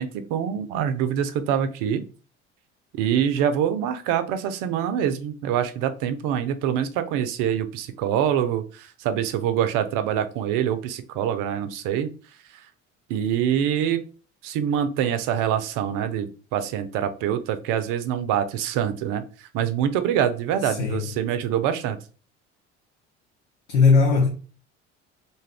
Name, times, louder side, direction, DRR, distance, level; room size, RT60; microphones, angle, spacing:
voice 1, 0.0-2.1 2.9-12.1 13.1-14.0 14.4-22.0, right 9 dB, 65° right, 0.6 m, -25 dB
voice 2, 20.6-21.0 23.7-24.3, left 4 dB, 90° left, 0.6 m, -18 dB
2.6 x 2.3 x 3.4 m
hypercardioid pair, 65°, 35 cm